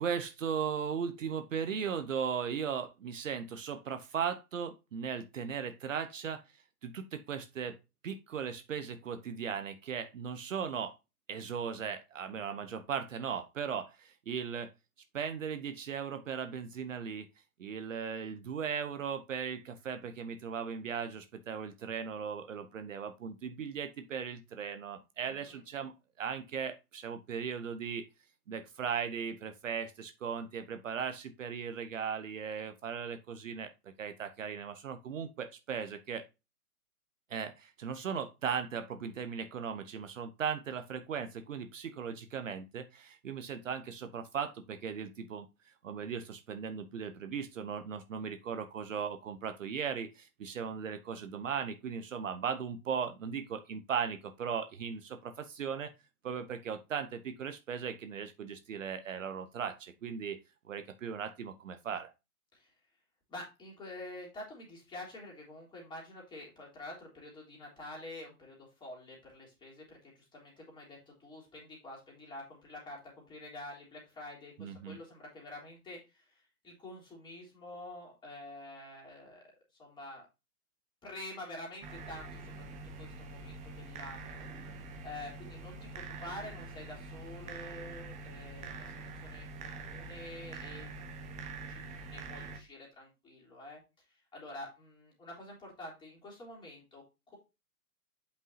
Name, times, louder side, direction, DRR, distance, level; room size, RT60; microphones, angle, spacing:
voice 1, 0.0-7.8 8.0-10.9 11.3-14.7 15.1-17.3 17.6-28.1 28.5-36.2 37.3-55.9 56.2-60.4 60.7-62.1 74.6-75.0, right 7 dB, 55° right, 9 dB, 1.0 m, -37 dB
voice 2, 25.2-25.6 62.5-62.7 63.3-79.4 79.8-80.2 81.0-84.5 85.0-90.9 91.7-91.8 92.1-93.8 94.3-97.4, left 1 dB, 10° left, -3 dB, 3.2 m, -48 dB
sound 1, 81.8-92.6, right 3 dB, 15° right, 1.0 m, -45 dB
8.2 x 5.4 x 2.7 m, 0.26 s
figure-of-eight pair, 125°, 45 cm